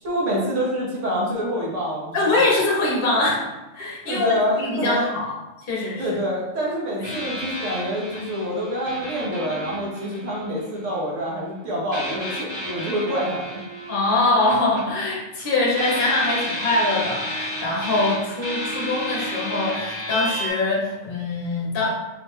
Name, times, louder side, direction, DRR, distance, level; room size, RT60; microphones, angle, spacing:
voice 1, 0.0-2.6 4.1-5.1 6.0-13.6, equal, 70° right, -4 dB, 1.4 m, -26 dB
voice 2, 2.1-3.4 3.7-5.3 5.7-6.1 13.9-21.9, left 2 dB, 50° left, -4 dB, 1.0 m, -23 dB
sound 1, 7.0-10.9 11.9-15.4 15.7-20.5, equal, 50° right, 1.8 m, -32 dB
3.6 x 3.2 x 3.2 m, 1.0 s
omnidirectional pair, 1.3 m